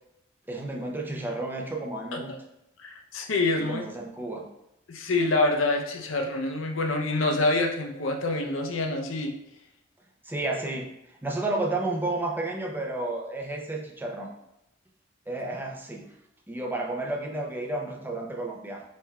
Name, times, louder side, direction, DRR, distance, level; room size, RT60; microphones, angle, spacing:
voice 1, 0.5-2.3 3.6-4.5 10.2-10.9 11.2-14.3 15.3-16.1 16.5-18.8, right 2 dB, 10° right, 0 dB, 0.5 m, -31 dB
voice 2, 2.8-3.8 4.9-9.3, left 2 dB, 75° left, 3 dB, 0.6 m, -26 dB
5.4 x 3.3 x 2.3 m, 0.86 s
head